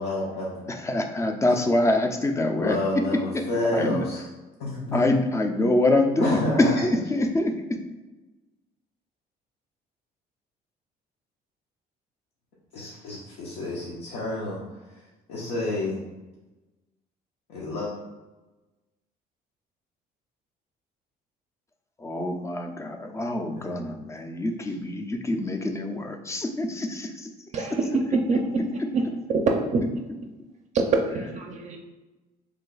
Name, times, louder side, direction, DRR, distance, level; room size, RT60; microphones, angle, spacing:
voice 1, 0.0-0.6 2.6-4.2 4.6-5.1 6.2-6.9 12.7-15.0 15.3-16.0 17.5-17.9 23.6-23.8, left 2 dB, 85° left, -6 dB, 0.8 m, -30 dB
voice 2, 0.7-2.8 3.7-4.0 4.9-7.7 22.0-27.3, left 2 dB, 15° left, 4 dB, 0.4 m, -25 dB
voice 3, 27.5-28.6 28.9-29.0 29.3-29.4 29.7-29.8 30.7-31.8, right 4 dB, 45° right, 2 dB, 0.4 m, -25 dB
3.2 x 2.2 x 3.9 m, 1.1 s
cardioid pair, 110°, 17 cm